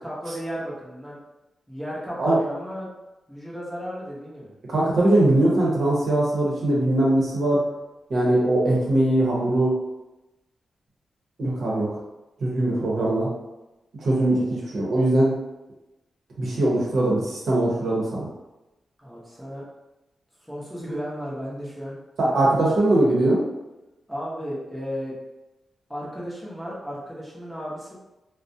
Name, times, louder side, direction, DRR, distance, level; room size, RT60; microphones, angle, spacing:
voice 1, 0.0-1.2 1.7-2.9 3.3-4.5 19.0-19.6 20.4-22.5 24.1-25.1 25.9-28.0, equal, ahead, -7 dB, 0.6 m, -34 dB
voice 2, 4.6-7.6 8.1-9.8 11.4-12.0 12.4-13.3 14.0-15.3 16.4-18.3 22.3-23.5, right 1 dB, 70° right, -5 dB, 0.7 m, -21 dB
2.4 x 2.0 x 2.6 m, 1.0 s
wide cardioid pair, 140°, 0 cm